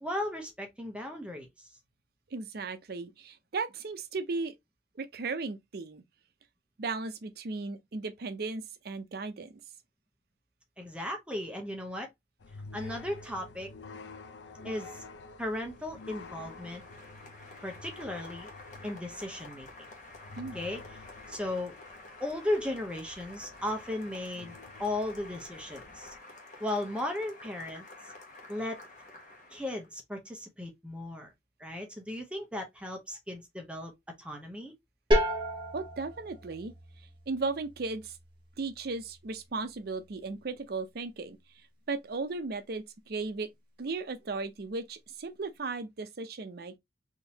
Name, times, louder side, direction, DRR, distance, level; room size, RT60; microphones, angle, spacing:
voice 1, 0.0-1.5 10.8-12.1 12.7-13.7 14.6-15.0 15.4-16.8 17.6-18.5 18.8-19.7 20.5-20.8 21.3-21.7 22.2-26.1 26.6-27.9 28.5-28.8 29.5-31.3 31.6-33.9 34.2-34.7, left 1 dB, 5° right, 0.7 m, -36 dB
voice 2, 2.3-4.6 5.0-6.0 6.8-9.5 20.4-20.6 35.7-36.7 37.3-38.2 38.6-41.4 41.9-43.5 43.8-46.8, right 3 dB, 60° right, 0.5 m, -36 dB
sound 1, 12.4-26.2, left 3 dB, 80° left, 0.5 m, -49 dB
Applause, 15.5-29.9, left 2 dB, 45° left, 1.0 m, -50 dB
sound 2, 35.1-40.6, equal, 30° right, 1.1 m, -34 dB
3.6 x 2.7 x 2.8 m
head